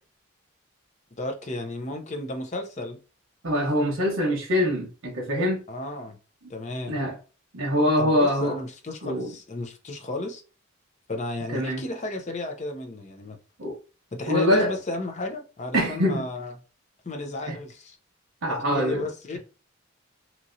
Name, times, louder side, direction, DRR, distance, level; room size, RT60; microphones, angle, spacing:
voice 1, 1.2-3.0 5.7-6.2 6.5-7.0 8.0-10.4 11.1-13.4 14.1-16.5 17.0-18.0 18.5-19.4, left 2 dB, 35° left, 0.5 m, -33 dB
voice 2, 3.4-5.6 6.9-7.1 7.5-8.6 9.0-9.3 11.5-11.8 13.6-13.7 14.3-14.7 15.7-16.2 17.5-17.6 18.4-19.0, equal, 80° right, 0.9 m, -24 dB
2.9 x 2.7 x 2.5 m
head